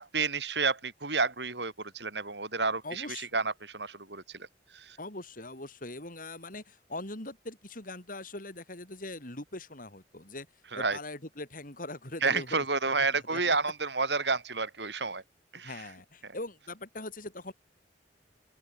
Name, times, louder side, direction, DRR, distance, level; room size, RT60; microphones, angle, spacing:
voice 1, 0.0-4.4 4.7-5.0 10.7-11.0 12.2-15.2 15.5-15.7, right 4 dB, 75° right, 7.1 m, -30 dB
voice 2, 2.8-3.3 5.0-10.5 10.7-12.7 13.3-13.6 15.6-17.5, left 2 dB, 50° left, 7.7 m, -41 dB
open air
head